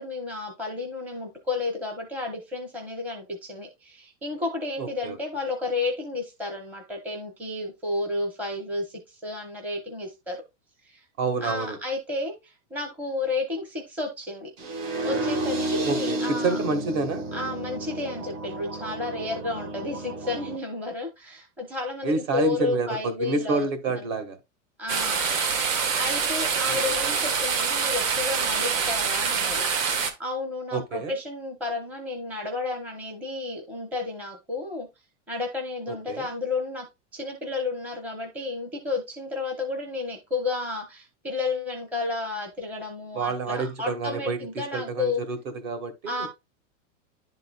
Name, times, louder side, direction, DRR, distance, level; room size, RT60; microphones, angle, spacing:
voice 1, 0.0-10.4 10.8-11.0 11.4-14.5 15.0-16.6 17.3-23.7 23.9-24.1 24.8-25.4 26.0-29.6 30.2-34.9 35.3-36.9 37.1-45.2 46.1-46.3, left 3 dB, 5° right, 0.7 m, -32 dB
voice 2, 4.8-5.2 11.2-11.8 15.8-17.2 22.0-24.4 26.7-26.9 30.7-31.1 35.9-36.3 43.1-45.4 45.6-46.3, right 3 dB, 50° right, 1.5 m, -28 dB
sound 1, 14.6-20.6, right 1 dB, 30° right, 1.1 m, -31 dB
sound 2, 24.9-30.1, right 6 dB, 90° right, 1.4 m, -25 dB
11.0 x 3.9 x 2.2 m
supercardioid pair, 165°, 38 cm